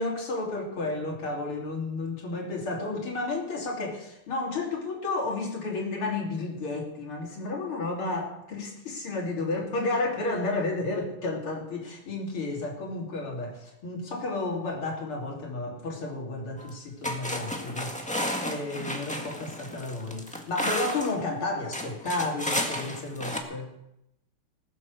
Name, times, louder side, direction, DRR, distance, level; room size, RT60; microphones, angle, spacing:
voice 1, 0.0-17.9 18.5-23.7, left 2 dB, 80° left, 0 dB, 3.8 m, -32 dB
sound 1, 16.6-16.7 17.0-21.2 21.7-23.4, equal, 5° left, 1.4 m, -32 dB
20.0 x 8.4 x 6.5 m, 0.86 s
omnidirectional pair, 2.4 m